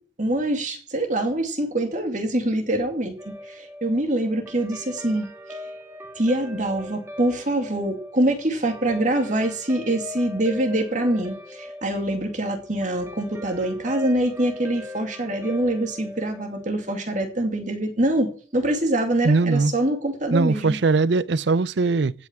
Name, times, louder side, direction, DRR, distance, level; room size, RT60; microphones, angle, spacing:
voice 1, 0.2-5.3 6.2-20.8, right 1 dB, 40° right, 2.5 m, -24 dB
Guitar, 3.2-17.8, left 1 dB, 15° right, 1.8 m, -40 dB
voice 2, 19.2-19.7 20.3-22.1, right 3 dB, 70° right, 0.5 m, -20 dB
16.0 x 6.0 x 8.9 m
head